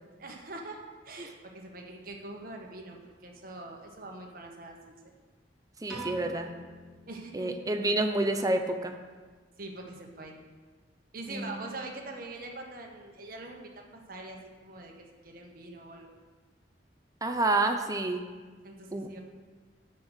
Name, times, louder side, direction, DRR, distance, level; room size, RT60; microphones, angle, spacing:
voice 1, 0.2-5.1 7.1-7.5 9.6-10.4 11.1-16.1 18.6-19.2, right 2 dB, 55° right, 1 dB, 1.4 m, -43 dB
voice 2, 5.8-6.5 7.3-8.9 11.3-11.6 17.2-18.2 18.9-19.1, right 2 dB, 20° right, 5 dB, 0.7 m, -28 dB
Piano, 5.9-8.2, right 1 dB, 5° right, 2.3 m, -45 dB
8.7 x 6.0 x 6.3 m, 1.4 s
head